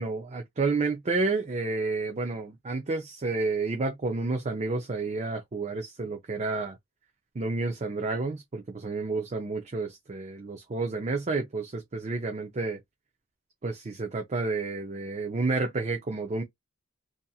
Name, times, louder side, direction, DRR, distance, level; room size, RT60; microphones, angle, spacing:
voice 1, 0.0-6.8 7.3-12.8 13.6-16.4, right 3 dB, 30° right, 0.5 m, -30 dB
2.8 x 2.4 x 2.3 m
head